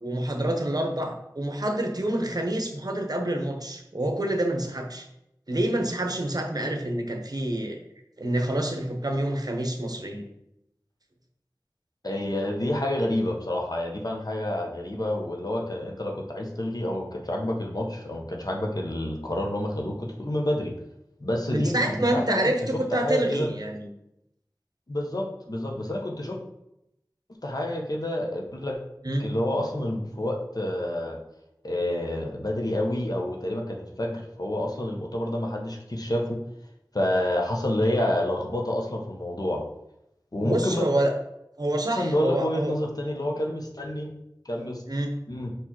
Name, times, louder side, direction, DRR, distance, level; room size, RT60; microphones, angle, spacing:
voice 1, 0.0-5.1 5.5-7.8 8.2-10.2 21.5-23.9 29.0-29.3 40.4-41.1 41.6-42.7 44.9-45.1, right 1 dB, 55° right, 4 dB, 1.0 m, -27 dB
voice 2, 12.0-20.7 21.2-22.4 22.9-23.5 24.9-26.4 27.4-28.8 29.2-31.2 31.6-36.4 36.9-39.6 40.3-40.9 41.9-44.1 44.4-44.8 45.3-45.5, left 1 dB, 55° left, 1 dB, 1.2 m, -28 dB
5.3 x 4.8 x 4.4 m, 0.83 s
wide cardioid pair, 50°, 8 cm